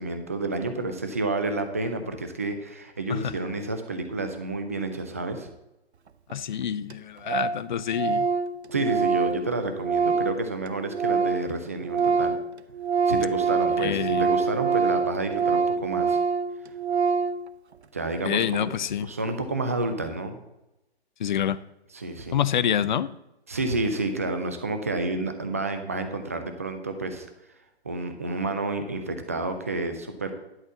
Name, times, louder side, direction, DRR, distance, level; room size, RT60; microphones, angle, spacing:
voice 1, 0.0-5.5 8.7-12.4 13.1-16.2 17.9-18.7 19.0-20.4 21.9-22.4 23.5-27.3 27.8-30.3, right 2 dB, 15° right, 0.4 m, -30 dB
voice 2, 6.3-8.3 13.8-14.3 18.2-19.1 21.2-21.6 22.3-23.1, left 9 dB, 45° left, 0.5 m, -27 dB
Organ, 6.3-6.4 6.6-6.7 6.9-7.0 7.3-7.6 7.9-11.5 11.8-17.4, right 5 dB, 80° right, 0.6 m, -25 dB
11.0 x 4.3 x 7.3 m
figure-of-eight pair, 135°, 32 cm